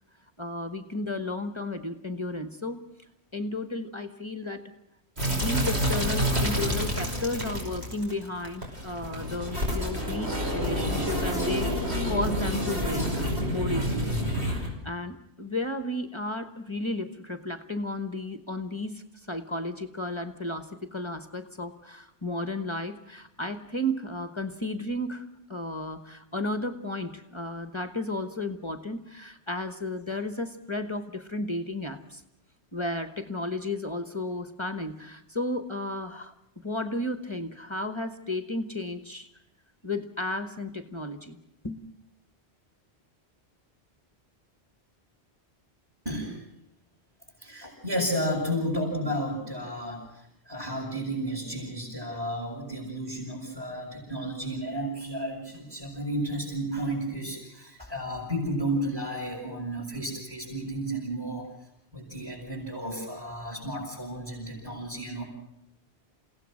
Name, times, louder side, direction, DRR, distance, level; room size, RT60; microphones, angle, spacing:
voice 1, 0.4-2.8 3.3-4.7 5.3-14.2 14.5-32.2 32.7-39.3 39.8-41.4 41.6-41.9, left 1 dB, 25° left, 9 dB, 1.3 m, -33 dB
sound 1, 5.2-14.7, equal, 75° right, 5.7 m, -28 dB
voice 2, 46.1-46.4 47.4-61.5 61.9-65.2, equal, 20° right, -5 dB, 7.2 m, -32 dB
29.5 x 17.0 x 6.4 m, 0.85 s
omnidirectional pair, 1.1 m